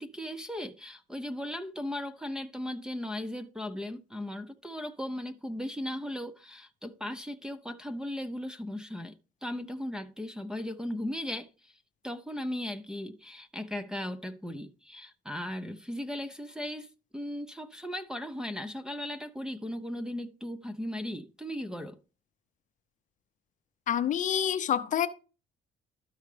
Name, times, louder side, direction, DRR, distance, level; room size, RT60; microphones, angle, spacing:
voice 1, 0.0-11.7 12.0-22.0, left 1 dB, 5° right, 0.5 m, -37 dB
voice 2, 23.9-25.1, left 9 dB, 50° left, 0.6 m, -27 dB
12.5 x 4.7 x 3.3 m
cardioid pair, 110°, 17 cm